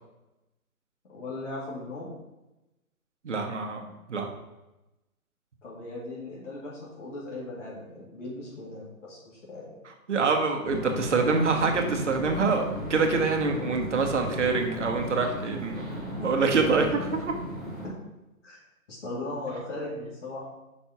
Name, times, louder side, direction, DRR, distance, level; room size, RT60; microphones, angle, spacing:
voice 1, 1.1-2.1 5.6-9.8 17.8-17.9 18.4-18.6 18.9-20.5, left 2 dB, 55° left, -6 dB, 2.3 m, -38 dB
voice 2, 3.2-4.3 10.1-17.4, right 4 dB, 55° right, 4 dB, 1.2 m, -26 dB
sound 1, 10.6-17.9, equal, ahead, 1.7 m, -35 dB
5.4 x 4.3 x 5.6 m, 1.0 s
hypercardioid pair, 165°, 43 cm